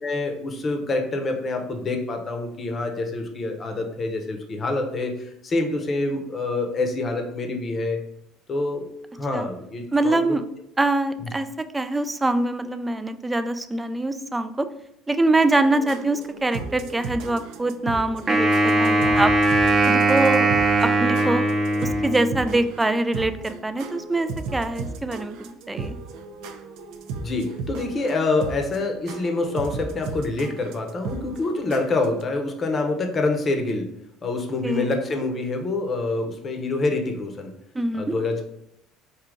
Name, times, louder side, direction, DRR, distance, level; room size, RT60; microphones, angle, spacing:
voice 1, 0.0-5.1 5.4-8.0 8.5-8.9 9.2-10.3 11.2-11.3 27.2-33.9 34.2-37.5 38.0-38.4, left 3 dB, 30° left, 4 dB, 0.8 m, -26 dB
voice 2, 9.9-10.4 10.8-14.7 15.1-19.3 19.9-20.5 20.8-21.4 21.8-26.0 34.6-34.9 37.7-38.1, right 2 dB, 10° right, 10 dB, 0.3 m, -24 dB
sound 1, 15.6-32.2, right 4 dB, 75° right, 0.5 m, -36 dB
Wind instrument woodwind instrument, 18.3-22.6, right 2 dB, 30° right, 0.8 m, -20 dB
4.8 x 2.7 x 3.7 m, 0.78 s
supercardioid pair, 110°, 0 cm